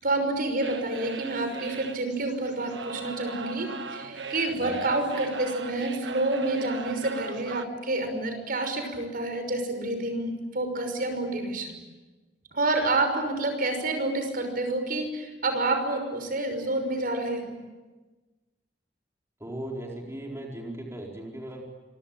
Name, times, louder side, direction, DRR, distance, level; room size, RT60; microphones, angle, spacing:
voice 1, 0.0-11.7 12.5-17.6, right 2 dB, 55° right, 6 dB, 5.9 m, -28 dB
sound 1, 0.6-7.6, right 4 dB, 80° right, 1.4 m, -39 dB
voice 2, 4.5-4.8 19.4-21.6, right 1 dB, 15° right, -1 dB, 4.4 m, -38 dB
26.5 x 24.0 x 9.1 m, 1.2 s
head